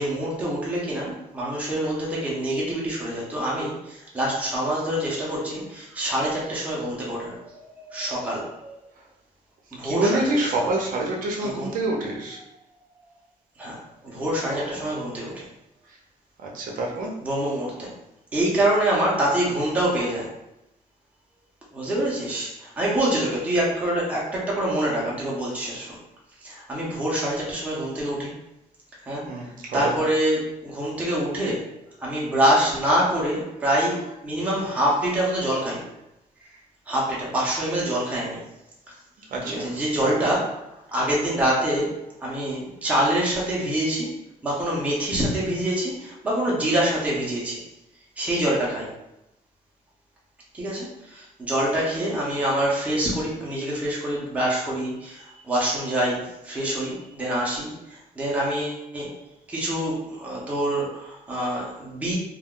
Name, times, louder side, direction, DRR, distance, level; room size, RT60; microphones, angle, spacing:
voice 1, 0.0-8.7 9.7-10.1 10.5-10.7 11.4-11.7 13.6-13.8 14.0-15.4 17.2-17.9 18.3-20.3 21.7-26.0 26.4-28.3 29.1-29.3 29.7-31.7 32.0-35.8 36.9-38.4 39.4-40.5 40.9-44.1 44.4-47.6 48.2-48.9 50.5-59.1 59.5-62.1, right 1 dB, 10° right, -5 dB, 0.6 m, -25 dB
voice 2, 9.8-12.4 14.1-14.3 14.5-15.2 16.4-17.1 29.2-29.9 39.3-39.7 40.0-40.3, right 2 dB, 60° right, -1 dB, 0.6 m, -27 dB
2.3 x 2.1 x 3.6 m, 0.88 s
cardioid pair, 175°, 16 cm